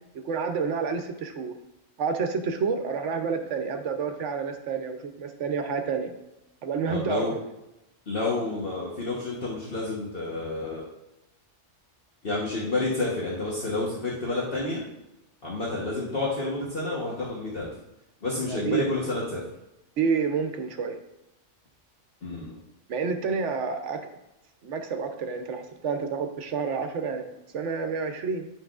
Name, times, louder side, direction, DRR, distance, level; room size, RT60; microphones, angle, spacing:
voice 1, 0.2-1.5 2.0-6.1 6.6-7.2 18.4-18.9 20.0-21.0 22.9-24.0 24.6-27.3 27.5-28.5, right 5 dB, 80° right, 6 dB, 1.1 m, -29 dB
voice 2, 6.9-7.3 8.1-10.8 12.2-14.8 15.4-17.7 18.2-19.4 22.2-22.5, left 2 dB, 50° left, -5 dB, 1.3 m, -29 dB
9.4 x 5.8 x 2.4 m, 0.91 s
omnidirectional pair, 1.2 m